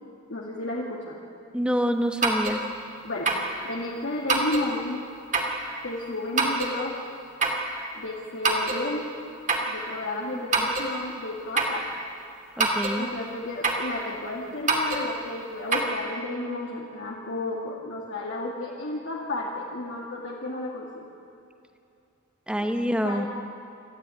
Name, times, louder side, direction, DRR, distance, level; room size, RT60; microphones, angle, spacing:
voice 1, 0.3-1.2 3.0-3.3 3.7-5.0 5.8-7.0 7.9-9.1 9.7-11.8 13.0-21.1 22.6-22.7 23.0-23.3, left 2 dB, 60° left, -3 dB, 2.2 m, -32 dB
voice 2, 1.5-2.6 10.3-10.7 12.6-13.1 22.5-23.3, equal, 5° right, 7 dB, 1.2 m, -27 dB
sound 1, 2.2-2.6 3.2-3.5 4.3-4.7 5.3-5.6 6.4-6.7 7.4-7.7 8.4-8.8 9.5-9.7 10.5-10.9 11.6-11.8 12.6-13.0 13.6-13.9 14.7-15.1 15.7-15.9, right 3 dB, 40° right, 2.8 m, -24 dB
27.0 x 14.0 x 9.2 m, 2.7 s
head